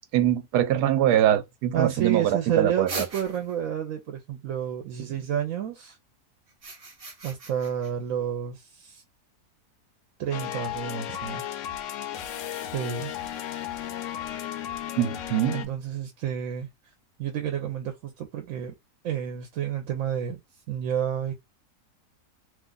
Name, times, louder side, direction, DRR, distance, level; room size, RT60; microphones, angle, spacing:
voice 1, 0.1-3.1 15.0-15.7, right 11 dB, 90° right, 1.1 m, -23 dB
voice 2, 1.7-6.0 7.2-9.0 10.2-11.4 12.7-13.1 15.5-16.7 17.2-18.7 19.0-20.4 20.7-21.3, right 9 dB, 65° right, 0.9 m, -30 dB
sound 1, 2.9-3.7 6.5-7.9, right 3 dB, 40° right, 0.5 m, -38 dB
sound 2, 10.3-15.7, left 11 dB, 70° left, 0.8 m, -34 dB
2.7 x 2.4 x 3.7 m
omnidirectional pair, 1.7 m